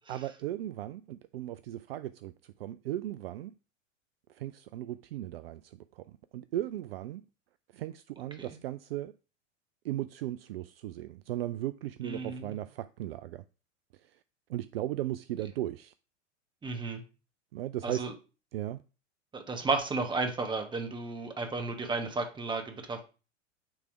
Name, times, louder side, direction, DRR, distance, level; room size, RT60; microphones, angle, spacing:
voice 1, 0.1-2.3 2.6-3.5 4.3-6.0 6.3-7.2 7.7-9.1 9.8-13.4 14.5-15.9 17.5-18.1 18.5-18.8, right 13 dB, 50° right, 0.4 m, -36 dB
voice 2, 12.0-12.6 16.6-17.0 17.8-18.1 19.3-23.0, right 3 dB, 10° right, 1.2 m, -33 dB
9.3 x 3.4 x 4.8 m
figure-of-eight pair, 85°, 38 cm